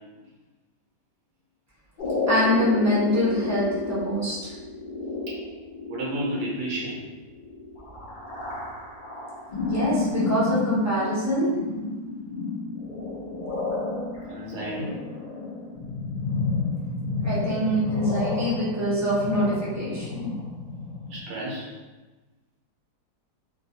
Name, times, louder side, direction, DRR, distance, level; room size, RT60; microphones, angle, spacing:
sound 1, 2.0-21.2, left 3 dB, 90° left, 0.4 m, -31 dB
voice 1, 2.3-4.5 9.7-11.6 17.2-20.3, equal, 20° right, -9 dB, 0.4 m, -24 dB
voice 2, 5.9-7.0 14.3-14.9 21.1-21.7, right 1 dB, 80° right, -4 dB, 1.3 m, -31 dB
3.1 x 2.3 x 2.7 m, 1.2 s
omnidirectional pair, 1.7 m